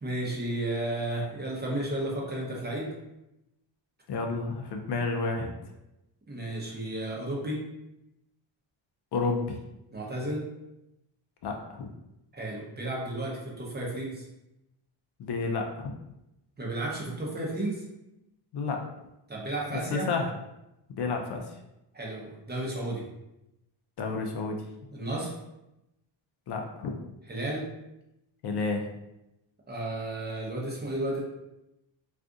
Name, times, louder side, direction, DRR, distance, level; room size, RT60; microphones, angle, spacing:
voice 1, 0.0-2.9 6.3-7.6 9.9-10.4 12.3-14.3 16.6-17.8 19.3-20.1 21.9-23.0 24.9-25.3 27.3-27.6 29.7-31.2, right 1 dB, 20° right, -3 dB, 0.7 m, -33 dB
voice 2, 4.1-5.5 9.1-9.4 11.4-11.9 15.2-15.9 18.5-18.8 19.7-20.3 20.9-21.5 24.0-24.6 26.5-27.0 28.4-28.9, left 4 dB, 60° left, 2 dB, 0.5 m, -30 dB
2.4 x 2.4 x 3.7 m, 0.91 s
cardioid pair, 110°, 46 cm